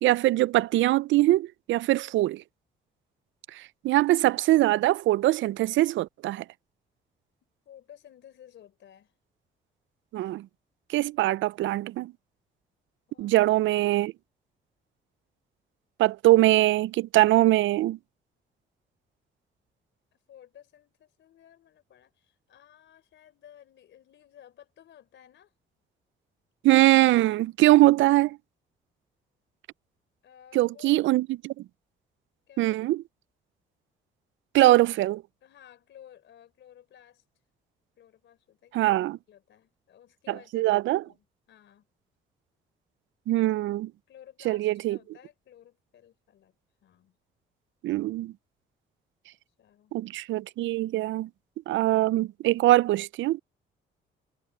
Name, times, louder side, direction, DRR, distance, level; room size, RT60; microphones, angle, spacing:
voice 1, 0.0-2.4 3.5-6.4 10.1-10.5 10.9-12.1 13.2-14.1 16.0-18.0 26.6-28.4 30.6-31.6 32.6-33.0 34.5-35.2 38.7-39.2 40.5-41.0 43.3-43.9 44.5-45.0 47.8-48.3 49.9-51.3 51.7-53.4, right 16 dB, 75° right, 0.4 m, -22 dB
voice 2, 7.7-9.2 13.1-13.6 20.1-25.5 30.2-31.1 32.5-32.9 35.4-37.2 38.0-38.8 39.3-41.9 44.1-46.6 46.8-47.2 49.6-49.9, left 10 dB, 70° left, 4.0 m, -54 dB
cardioid pair, 90°, 20 cm